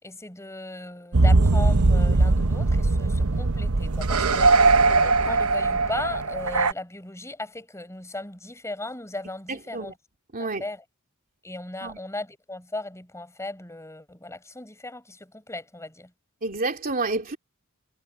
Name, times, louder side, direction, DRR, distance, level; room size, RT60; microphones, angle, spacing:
voice 1, 0.0-9.9 10.6-10.8 11.4-16.1, left 2 dB, 15° left, 6.9 m, -37 dB
sound 1, 1.1-6.7, right 3 dB, 75° right, 0.9 m, -20 dB
voice 2, 9.5-9.9 10.3-10.6 11.8-12.0 16.4-17.4, right 3 dB, 40° right, 2.9 m, -29 dB
head